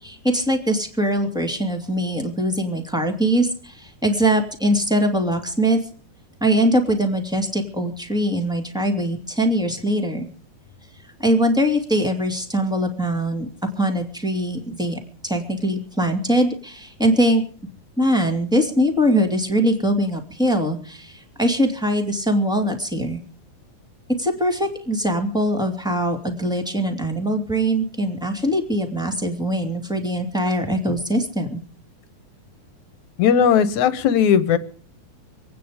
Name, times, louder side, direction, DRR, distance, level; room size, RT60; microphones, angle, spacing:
voice 1, 0.0-5.8 6.4-10.3 11.0-13.5 13.8-17.4 18.0-23.2 24.2-31.6, equal, ahead, 4 dB, 2.1 m, -22 dB
voice 2, 33.2-34.6, left 8 dB, 75° left, 13 dB, 2.3 m, -17 dB
26.0 x 9.4 x 5.0 m, 0.43 s
omnidirectional pair, 3.5 m